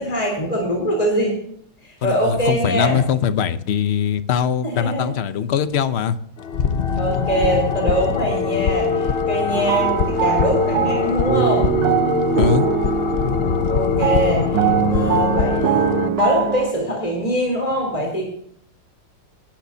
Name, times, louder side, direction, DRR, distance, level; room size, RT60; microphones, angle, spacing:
voice 1, 0.0-1.4 1.8-3.1 4.6-5.1 6.9-11.7 13.7-18.3, equal, 20° left, -1 dB, 3.8 m, -23 dB
voice 2, 2.0-6.2 12.4-12.7, left 8 dB, 50° left, 11 dB, 0.8 m, -21 dB
sound 1, 6.4-16.1, left 6 dB, 80° left, 0.5 m, -22 dB
sound 2, 9.5-16.7, right 13 dB, 75° right, 1.3 m, -22 dB
20.0 x 12.0 x 2.8 m, 0.65 s
omnidirectional pair, 2.1 m